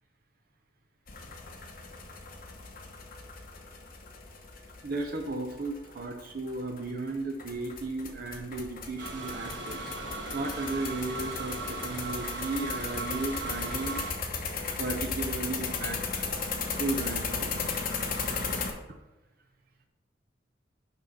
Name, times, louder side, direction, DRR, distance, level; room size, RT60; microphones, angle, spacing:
sound 1, 1.1-18.7, left 4 dB, 50° left, 1.0 m, -36 dB
voice 1, 4.8-9.9 10.3-14.0 14.8-16.3 16.8-17.5, right 2 dB, 55° right, 3 dB, 0.7 m, -35 dB
sound 2, 9.0-14.1, right 3 dB, 75° right, 1.3 m, -38 dB
6.0 x 5.5 x 5.0 m, 1.0 s
head